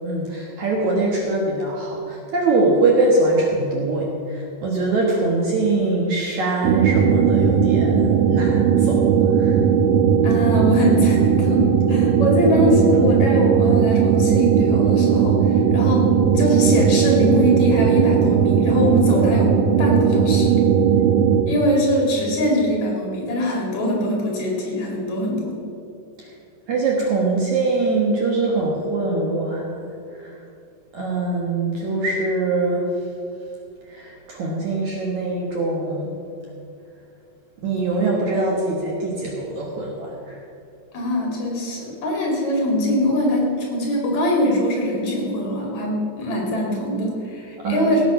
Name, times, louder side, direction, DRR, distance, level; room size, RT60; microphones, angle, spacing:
voice 1, 0.0-9.6 26.2-26.3 26.7-29.9 30.1-30.4 30.9-32.9 33.8-36.1 37.6-40.4 47.6-48.0, right 2 dB, 55° right, -2 dB, 2.3 m, -23 dB
sound 1, 6.6-21.4, right 7 dB, 80° right, 2.7 m, -17 dB
voice 2, 10.2-16.1 16.3-20.6 21.5-25.6 40.9-48.0, left 1 dB, 50° left, -1 dB, 3.4 m, -22 dB
17.5 x 8.4 x 5.6 m, 2.6 s
omnidirectional pair, 4.7 m